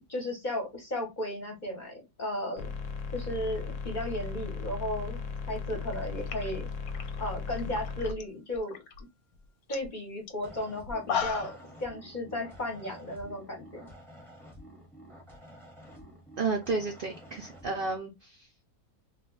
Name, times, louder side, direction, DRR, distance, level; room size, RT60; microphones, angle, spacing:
voice 1, 0.1-2.7 3.1-6.7 7.2-8.8 9.7-11.5 11.8-13.9, left 1 dB, 40° left, 1 dB, 0.8 m, -35 dB
sound 1, 2.6-8.1, left 4 dB, 70° left, 0.8 m, -37 dB
sound 2, 5.8-5.9 6.2-8.2 8.5-9.0 9.4-9.5 9.7-9.9 10.3-10.4 10.8-11.6, left 7 dB, 90° left, 1.2 m, -35 dB
sound 3, 10.4-18.0, equal, ahead, 0.7 m, -50 dB
voice 2, 16.4-18.5, right 4 dB, 80° right, 3 dB, 0.5 m, -32 dB
2.3 x 2.2 x 3.7 m, 0.22 s
omnidirectional pair, 1.6 m